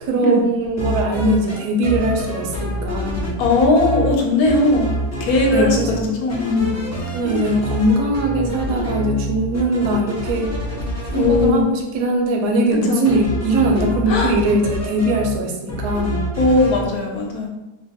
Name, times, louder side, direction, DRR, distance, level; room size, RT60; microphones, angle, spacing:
voice 1, 0.0-3.4 5.5-6.1 7.1-10.5 11.1-16.2, right 1 dB, 85° right, 2 dB, 1.2 m, -20 dB
sound 1, 0.6-1.6 1.8-4.1 4.4-6.0 6.3-11.4 13.0-15.3 15.7-16.8, equal, 25° left, 0.3 m, -26 dB
voice 2, 3.4-6.7 7.2-7.4 11.1-11.7 12.9-13.1 14.1-14.3 16.4-17.5, left 3 dB, 70° left, 0 dB, 1.1 m, -18 dB
2.9 x 2.2 x 4.0 m, 1.0 s
omnidirectional pair, 1.7 m